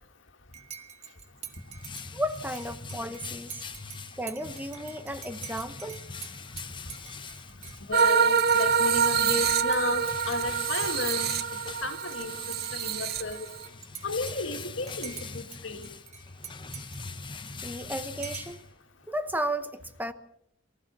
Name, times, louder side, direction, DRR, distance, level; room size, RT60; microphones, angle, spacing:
Dishes pots and pans / Cutlery silverware / Chink clink, 0.5-10.8 11.1-12.2 12.5-15.6 15.8-17.8 18.2-18.6, right 8 dB, 35° right, 1.9 m, -46 dB
sound 1, 1.2-19.1, left 4 dB, 25° left, 1.1 m, -43 dB
voice 1, 2.1-3.6 4.2-6.1 17.6-18.6 19.1-19.7 20.0-20.1, right 1 dB, 10° right, 10 dB, 0.9 m, -33 dB
voice 2, 7.9-11.3 11.8-12.3 12.7-13.5 14.0-15.9, left 3 dB, 70° left, 6 dB, 2.3 m, -33 dB
sound 2, 7.9-13.7, right 7 dB, 50° right, 0.8 m, -26 dB
24.0 x 15.0 x 7.3 m, 0.79 s
head